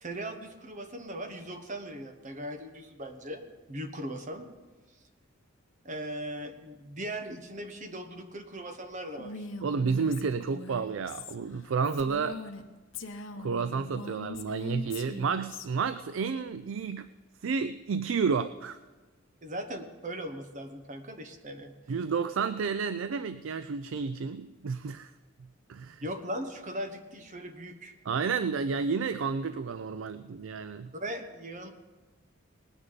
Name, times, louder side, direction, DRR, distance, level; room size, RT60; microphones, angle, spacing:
voice 1, 0.0-3.4 3.7-4.4 5.8-9.5 19.4-21.7 26.0-27.9 30.9-31.7, right 1 dB, 40° right, 6 dB, 1.2 m, -39 dB
Female speech woman speaking, 9.2-12.6 12.9-15.7, left 3 dB, 70° left, 1.0 m, -41 dB
voice 2, 9.6-12.4 13.4-17.1 17.4-18.8 21.9-25.1 25.7-26.0 28.0-30.9, right 5 dB, 70° right, 12 dB, 0.4 m, -31 dB
19.5 x 9.7 x 4.0 m, 1.3 s
head